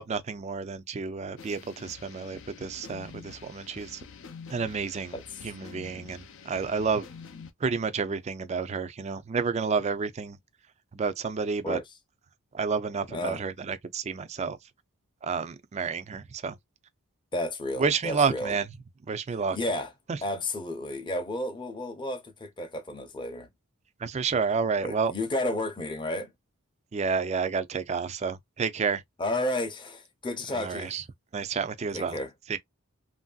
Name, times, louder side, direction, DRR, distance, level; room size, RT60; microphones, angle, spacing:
voice 1, 0.0-4.0 4.5-5.1 5.4-7.0 7.6-10.4 10.9-11.8 12.5-14.6 15.2-16.6 17.8-18.7 19.0-19.6 24.0-25.1 26.9-29.0 30.6-31.0 31.3-32.2 32.5-32.6, right 5 dB, 30° right, 0.4 m, -30 dB
sound 1, 1.4-7.5, left 5 dB, 60° left, 0.5 m, -47 dB
voice 2, 13.1-13.4 17.3-18.6 19.5-19.9 20.2-23.5 24.8-26.3 29.2-31.0 31.9-32.3, left 1 dB, 20° left, 0.6 m, -32 dB
3.0 x 2.6 x 2.3 m
head